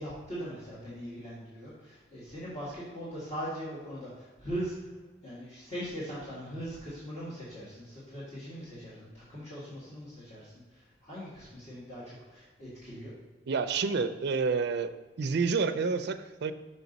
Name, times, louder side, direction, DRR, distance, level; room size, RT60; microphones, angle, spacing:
voice 1, 0.0-4.9 5.2-13.1, equal, 40° left, -10 dB, 1.8 m, -40 dB
voice 2, 13.5-14.9 15.2-16.5, right 5 dB, 65° right, 9 dB, 0.4 m, -29 dB
5.9 x 5.5 x 4.0 m, 1.3 s
head